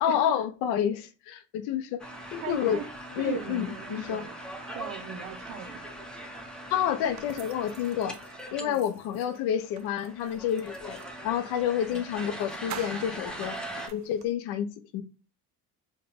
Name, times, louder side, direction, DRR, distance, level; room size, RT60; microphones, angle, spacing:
voice 1, 0.0-2.8 3.1-4.2 6.7-8.2 8.5-13.6 13.9-15.0, left 9 dB, 90° left, 0.6 m, -29 dB
sound 1, 2.0-8.6 8.9-9.0 9.1-13.9, right 1 dB, ahead, 0.7 m, -41 dB
voice 2, 2.4-2.9 3.2-4.3 4.7-5.9 8.6-8.8 11.9-12.1, right 8 dB, 90° right, 0.7 m, -39 dB
sound 2, 7.1-11.2 11.9-12.0 12.3-14.3, right 10 dB, 50° right, 0.4 m, -47 dB
4.1 x 2.2 x 3.4 m
cardioid pair, 95°, 37 cm